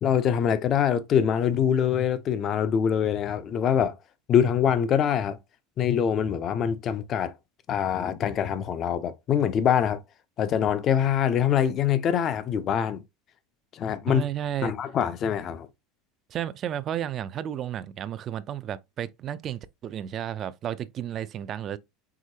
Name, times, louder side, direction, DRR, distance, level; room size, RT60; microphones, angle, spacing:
voice 1, 0.0-4.0 4.3-5.4 5.8-7.3 7.7-10.0 10.4-13.0 13.7-14.2 14.6-15.7, left 8 dB, 45° left, 0.6 m, -24 dB
voice 2, 14.1-14.7 16.3-21.8, right 10 dB, 40° right, 0.4 m, -32 dB
4.9 x 3.5 x 2.8 m
supercardioid pair, 110°, 0 cm